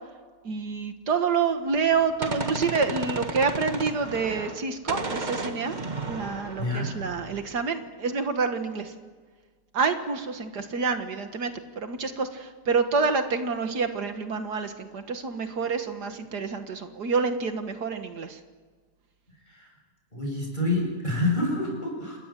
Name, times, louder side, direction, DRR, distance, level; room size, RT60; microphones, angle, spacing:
voice 1, 0.4-5.8 6.1-8.9 9.7-18.4, right 5 dB, 80° right, 7 dB, 2.2 m, -28 dB
Gunshot gunfire, 1.8-4.6 4.9-7.6, right 3 dB, 30° right, 1.6 m, -34 dB
voice 2, 6.6-7.0 19.5-19.7 20.1-22.2, left 1 dB, 25° left, -1 dB, 8.0 m, -27 dB
28.0 x 21.5 x 7.6 m, 1.4 s
omnidirectional pair, 1.8 m